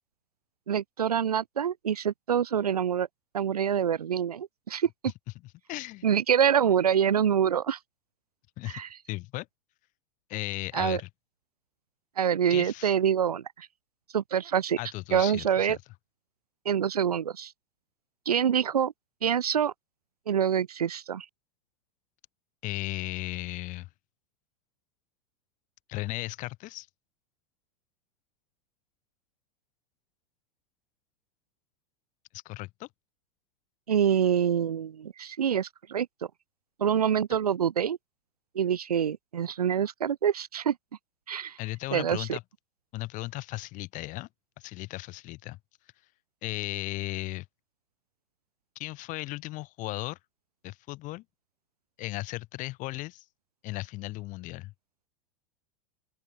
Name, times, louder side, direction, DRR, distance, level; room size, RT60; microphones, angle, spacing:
voice 1, 0.7-3.1 3.3-4.9 6.0-7.8 8.7-8.9 10.7-11.0 12.2-13.7 14.1-14.8 15.1-15.8 16.6-17.5 18.3-18.9 19.2-19.7 20.3-21.3 33.9-36.1 36.8-38.0 38.5-40.8 41.3-41.6 41.9-42.4, right 8 dB, 80° right, 0.9 m, -26 dB
voice 2, 5.7-6.0 8.6-8.8 9.1-9.5 10.3-11.1 12.5-12.9 14.8-15.8 22.6-23.9 25.9-26.9 32.3-32.9 41.6-42.4 42.9-44.3 44.6-45.6 46.4-47.4 48.7-50.2 50.6-51.2 52.0-53.2 53.6-54.7, left 19 dB, 40° left, 1.6 m, -36 dB
open air
hypercardioid pair, 90°, 19 cm